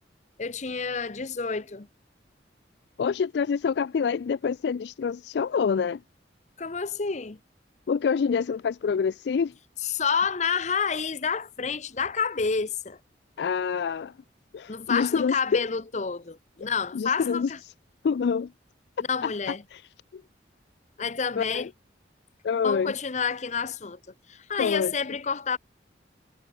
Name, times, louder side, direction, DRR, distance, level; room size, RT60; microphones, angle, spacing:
voice 1, 0.4-1.9 6.6-7.4 9.8-13.0 14.7-17.6 19.1-19.6 21.0-21.7 22.6-24.0 24.3-25.6, left 5 dB, 40° left, 0.8 m, -29 dB
voice 2, 3.0-6.0 7.9-9.5 13.4-14.1 14.5-15.4 16.9-17.5 18.0-18.5 19.2-19.8 20.1-20.2 21.4-21.7 22.4-22.9 24.6-24.9, left 6 dB, 65° left, 0.3 m, -26 dB
head